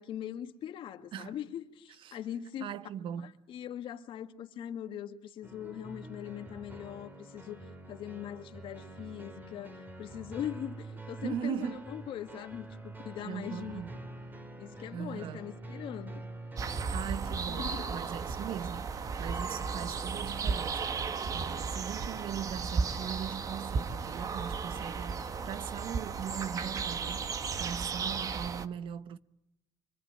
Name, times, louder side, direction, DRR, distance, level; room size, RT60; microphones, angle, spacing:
voice 1, 0.0-2.7 3.5-7.6 7.9-13.8 14.6-16.2 17.3-18.0, left 10 dB, 55° left, 2.0 m, -41 dB
voice 2, 2.6-3.3 11.2-11.9 13.2-13.9 14.9-15.5 16.9-27.3 27.6-29.2, right 9 dB, 55° right, 0.9 m, -39 dB
sound 1, 5.4-16.9, right 2 dB, 20° right, 2.3 m, -46 dB
sound 2, 16.6-28.7, right 5 dB, 35° right, 1.2 m, -35 dB
25.5 x 25.0 x 8.9 m
cardioid pair, 140°, 10 cm